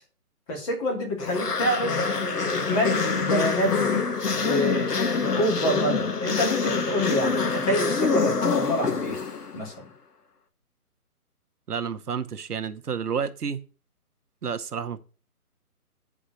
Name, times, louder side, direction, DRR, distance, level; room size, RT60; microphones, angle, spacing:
voice 1, 0.5-4.1 4.3-9.2 9.5-9.7, left 1 dB, 25° left, 2.9 m, -27 dB
sound 1, 1.2-9.7, left 4 dB, 90° left, 1.8 m, -26 dB
voice 2, 11.7-13.6 14.4-15.0, right 6 dB, 85° right, 1.1 m, -30 dB
9.4 x 5.0 x 6.3 m
hypercardioid pair, 165°, 45 cm